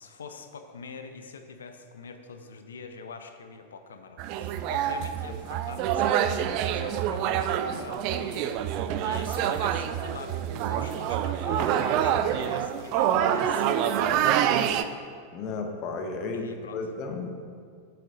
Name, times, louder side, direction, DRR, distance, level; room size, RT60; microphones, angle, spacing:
voice 1, 0.0-14.9 16.3-16.8, left 5 dB, 65° left, 7 dB, 0.6 m, -44 dB
sound 1, 4.2-14.8, right 9 dB, 45° right, 0.3 m, -26 dB
voice 2, 15.3-17.3, left 4 dB, 40° left, 5 dB, 0.9 m, -33 dB
7.5 x 6.7 x 3.8 m, 2.1 s
figure-of-eight pair, 90°, 0 cm